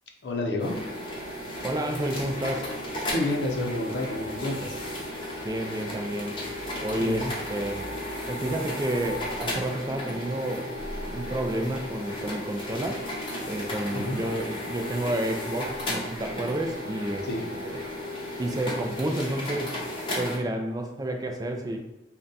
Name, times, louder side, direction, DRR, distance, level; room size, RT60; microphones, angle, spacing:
voice 1, 0.2-0.8 3.1-4.7 7.0-7.3 13.9-14.2 17.2-17.5, left 2 dB, 75° left, 1 dB, 0.6 m, -29 dB
sound 1, 0.6-20.4, left 1 dB, 30° left, 0.7 m, -34 dB
voice 2, 1.6-2.8 5.4-6.4 6.8-7.9 8.3-10.7 11.1-13.0 13.5-17.3 17.5-17.8 18.4-19.8 20.2-21.8, right 1 dB, 20° right, 3 dB, 0.3 m, -30 dB
3.7 x 2.2 x 4.0 m, 0.93 s
head